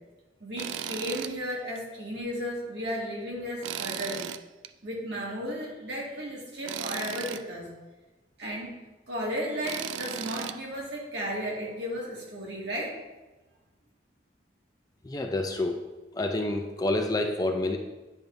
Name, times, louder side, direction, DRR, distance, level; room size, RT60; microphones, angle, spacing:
voice 1, 0.4-4.2 4.8-7.7 8.4-8.7 9.1-13.0, equal, 65° right, -4 dB, 1.9 m, -34 dB
Tools, 0.6-1.3 1.7-1.8 3.6-4.7 6.7-7.4 9.6-10.6, right 9 dB, 85° right, 0.3 m, -35 dB
voice 2, 15.0-15.8 16.1-17.8, left 2 dB, 20° left, 4 dB, 0.4 m, -28 dB
9.3 x 5.2 x 2.6 m, 1.1 s
head